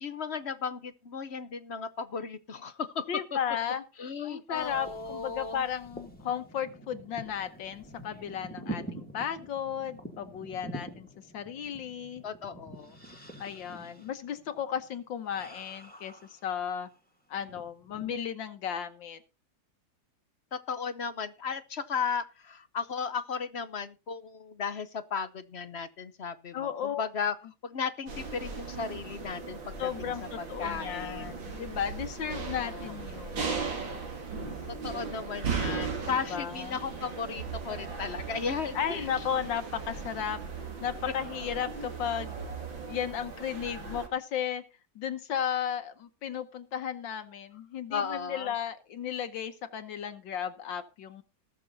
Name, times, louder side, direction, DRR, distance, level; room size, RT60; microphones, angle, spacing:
voice 1, 0.0-3.1 4.0-5.6 12.2-13.0 20.5-27.4 27.6-29.9 30.4-31.5 32.2-32.9 34.8-39.1 47.9-48.5, left 6 dB, 50° left, 13 dB, 0.8 m, -35 dB
voice 2, 3.1-3.8 4.2-11.1 11.3-12.2 13.4-16.9 17.3-19.2 26.5-27.0 29.8-33.7 36.3-36.8 38.7-40.4 40.8-42.4 42.8-44.6 44.9-51.2, left 8 dB, 70° left, 9 dB, 1.7 m, -34 dB
sound 1, 4.5-17.0 17.4-18.2, right 1 dB, 5° left, 2.1 m, -46 dB
sound 2, 28.1-44.1, right 5 dB, 75° right, 3.3 m, -37 dB
20.0 x 6.8 x 4.0 m, 0.29 s
omnidirectional pair, 2.1 m